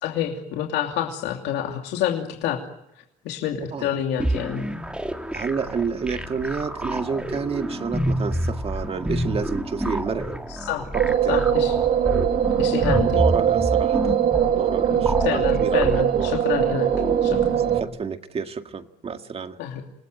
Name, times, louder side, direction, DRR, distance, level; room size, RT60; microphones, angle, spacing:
voice 1, 0.0-2.6 3.2-4.6 10.7-10.9 11.3-11.8 12.6-13.2 14.9-16.9 17.2-17.6 19.6-19.8, left 10 dB, 85° left, 2 dB, 2.8 m, -28 dB
sound 1, 4.2-17.8, equal, 5° right, 2.9 m, -29 dB
voice 2, 5.3-10.4 10.9-11.4 13.0-14.2 14.5-16.3 17.5-19.6, right 5 dB, 35° right, 7 dB, 2.0 m, -30 dB
sound 2, 10.9-17.8, right 10 dB, 60° right, 2.3 m, -21 dB
27.5 x 20.0 x 9.2 m, 0.84 s
cardioid pair, 110°, 17 cm